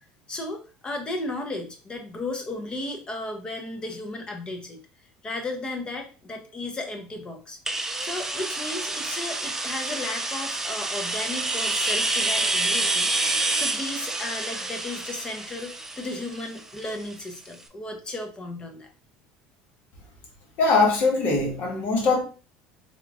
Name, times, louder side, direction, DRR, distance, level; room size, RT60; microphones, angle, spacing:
voice 1, 0.3-4.8 5.2-7.6 8.0-13.1 13.5-18.9, left 2 dB, 25° left, 4 dB, 0.9 m, -34 dB
sound 1, 7.7-17.3, right 2 dB, 10° right, 0.5 m, -28 dB
voice 2, 20.6-22.2, left 3 dB, 55° left, 1 dB, 1.4 m, -21 dB
3.6 x 3.0 x 2.5 m, 0.35 s
supercardioid pair, 100°, 4 cm